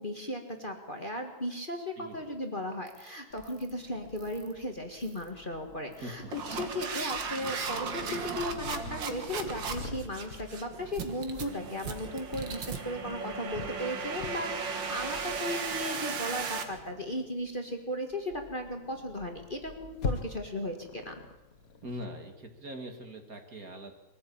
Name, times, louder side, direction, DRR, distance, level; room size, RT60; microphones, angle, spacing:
voice 1, 0.0-6.2 6.6-21.2, left 1 dB, 25° left, 3 dB, 1.8 m, -36 dB
voice 2, 2.0-2.4 6.0-6.3 21.8-23.9, equal, 45° right, 5 dB, 2.5 m, -42 dB
sound 1, 2.9-3.1 3.4-3.7 4.2-4.5 5.0-5.3 5.9-16.6, right 5 dB, 65° right, 2.3 m, -36 dB
Purr, 3.3-22.0, left 5 dB, 45° left, 1.7 m, -44 dB
22.5 x 14.5 x 8.6 m, 1.0 s
omnidirectional pair, 2.2 m